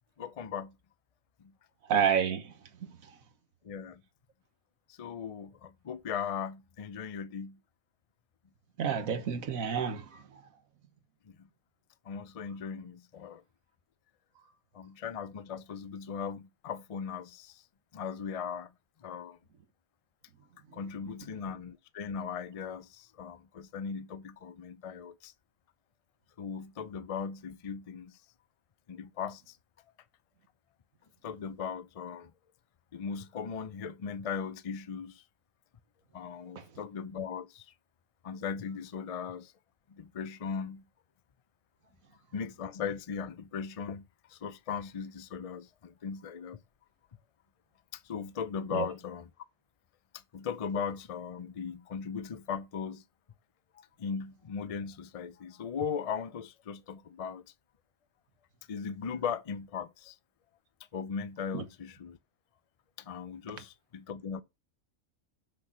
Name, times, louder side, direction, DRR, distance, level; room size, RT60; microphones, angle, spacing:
voice 1, 0.2-0.7 1.4-1.5 3.6-4.0 5.0-7.6 11.3-11.5 12.1-13.4 14.7-17.6 17.9-18.7 19.0-19.4 20.7-25.3 26.4-28.1 28.9-29.6 31.2-32.3 32.9-35.2 36.1-37.7 38.2-39.5 39.9-40.8 42.3-44.1 44.3-46.6 47.9-49.3 50.3-53.0 53.8-57.4 58.7-60.2 60.9-62.2 63.1-64.4, left 6 dB, 45° left, 0.5 m, -38 dB
voice 2, 1.9-2.5 8.8-10.2 48.7-48.9 61.5-61.6, right 7 dB, 80° right, 1.5 m, -29 dB
6.4 x 5.9 x 6.1 m
omnidirectional pair, 1.4 m